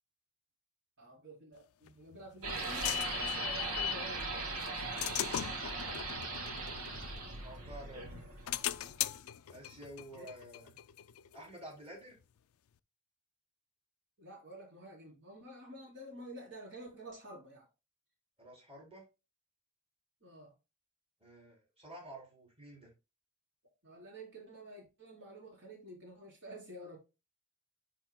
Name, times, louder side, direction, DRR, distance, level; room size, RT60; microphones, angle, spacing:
voice 1, 1.0-4.6 5.1-5.6 10.1-10.3 14.2-17.7 20.2-20.5 23.8-27.0, right 1 dB, 55° right, 4.3 m, -50 dB
sound 1, 1.9-4.1 4.6-7.7 8.1-11.6, left 12 dB, 75° left, 0.4 m, -39 dB
sound 2, 2.4-9.1, right 3 dB, 90° right, 2.0 m, -39 dB
voice 2, 6.4-6.7 7.4-8.1 9.5-10.7 11.3-12.2 18.4-19.0 21.2-22.9, right 1 dB, 25° right, 3.8 m, -50 dB
9.9 x 5.1 x 2.2 m
head